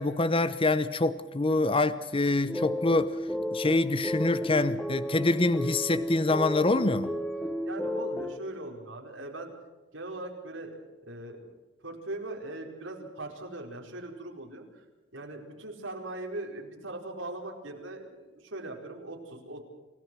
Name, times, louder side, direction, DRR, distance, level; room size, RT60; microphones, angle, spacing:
voice 1, 0.0-3.2 3.5-7.1, left 2 dB, 30° left, 14 dB, 0.8 m, -26 dB
sound 1, 2.5-8.4, equal, 5° left, 1.0 m, -32 dB
voice 2, 7.7-9.5 9.9-11.4 11.8-14.8 15.1-19.6, right 2 dB, 70° right, 1 dB, 4.7 m, -40 dB
29.0 x 17.0 x 6.3 m, 1.2 s
head